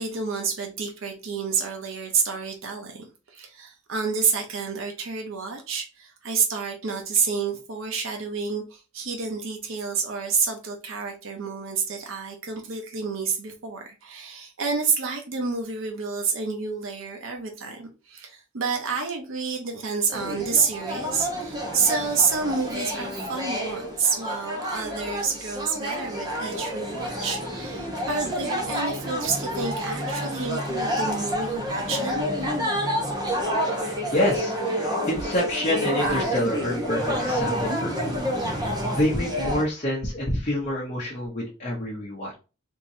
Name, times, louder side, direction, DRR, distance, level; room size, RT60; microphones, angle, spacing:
voice 1, 0.0-32.3, right 5 dB, 80° right, 0.7 m, -29 dB
sound 1, 20.1-39.6, equal, 20° right, 0.8 m, -29 dB
voice 2, 33.8-38.1 38.5-42.4, left 1 dB, 35° left, 0.8 m, -27 dB
3.7 x 2.9 x 2.6 m
head